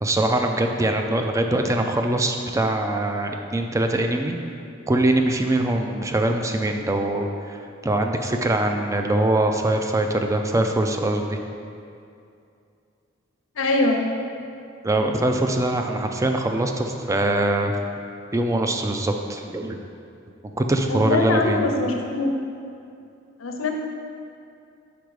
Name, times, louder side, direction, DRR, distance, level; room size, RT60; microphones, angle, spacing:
voice 1, 0.0-4.4 4.9-11.4 14.8-17.7 18.3-19.8 20.6-21.6, right 1 dB, 15° right, 4 dB, 0.3 m, -23 dB
voice 2, 13.5-14.0 20.9-22.3 23.4-23.7, left 2 dB, 85° left, 3 dB, 0.7 m, -22 dB
5.2 x 4.9 x 4.7 m, 2.5 s
head